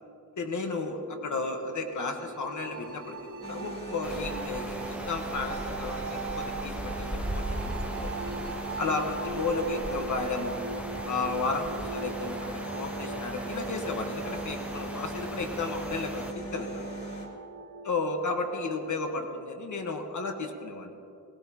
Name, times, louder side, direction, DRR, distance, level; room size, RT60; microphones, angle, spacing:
voice 1, 0.4-8.1 8.8-10.6 11.0-16.8 17.8-20.9, left 3 dB, 75° left, 4 dB, 1.3 m, -33 dB
sound 1, 0.9-18.9, right 2 dB, 85° right, 2.8 m, -41 dB
sound 2, 3.4-17.3, right 2 dB, 35° left, 3.1 m, -40 dB
sound 3, 4.0-16.3, right 1 dB, 5° right, 0.5 m, -39 dB
20.5 x 17.0 x 2.9 m, 2.8 s
wide cardioid pair, 165°, 30 cm